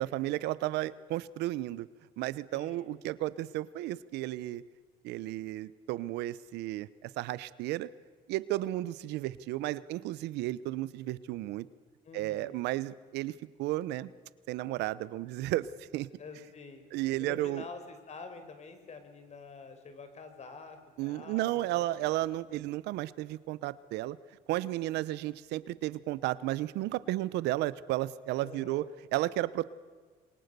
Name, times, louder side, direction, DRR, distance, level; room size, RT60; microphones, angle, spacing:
voice 1, 0.0-1.9 2.2-4.6 5.0-7.9 8.3-11.7 12.1-14.1 14.5-16.1 16.9-17.6 21.0-24.2 24.5-29.6, right 16 dB, 90° right, 18 dB, 0.9 m, -33 dB
voice 2, 2.5-2.9 12.0-12.6 16.2-16.9 17.2-22.1 28.4-28.9, left 4 dB, 40° left, 8 dB, 4.7 m, -47 dB
28.0 x 23.0 x 6.9 m, 1.5 s
cardioid pair, 110°, 17 cm